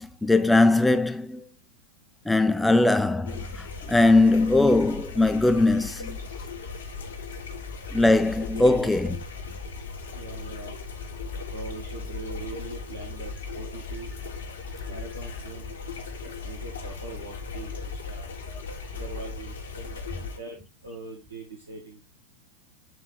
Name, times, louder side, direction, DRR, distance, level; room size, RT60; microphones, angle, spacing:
voice 1, 0.0-1.4 2.3-6.2 7.9-9.2, left 2 dB, 5° left, 0.6 m, -20 dB
sound 1, 3.3-20.4, left 4 dB, 65° left, 1.4 m, -37 dB
voice 2, 8.5-8.9 10.1-10.8 11.5-14.2 14.9-15.7 16.2-18.3 18.9-22.1, right 3 dB, 75° right, 1.5 m, -41 dB
8.1 x 3.4 x 3.9 m
figure-of-eight pair, 90°, 0 cm